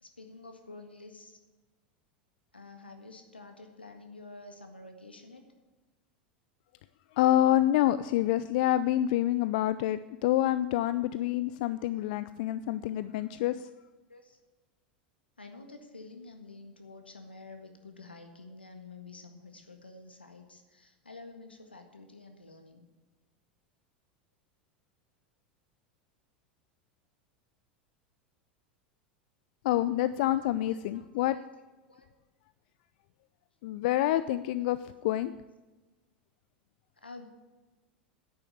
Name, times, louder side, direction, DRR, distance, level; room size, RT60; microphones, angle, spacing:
voice 1, 0.0-1.4 2.5-5.4 14.1-14.4 15.4-22.9 30.4-31.5 31.9-32.1 37.0-37.3, left 3 dB, 90° left, 5 dB, 1.6 m, -49 dB
voice 2, 7.2-13.6 29.6-31.4 33.6-34.8 35.0-35.3, left 13 dB, 60° left, 14 dB, 0.4 m, -27 dB
10.5 x 9.0 x 7.8 m, 1.2 s
figure-of-eight pair, 85°, 5 cm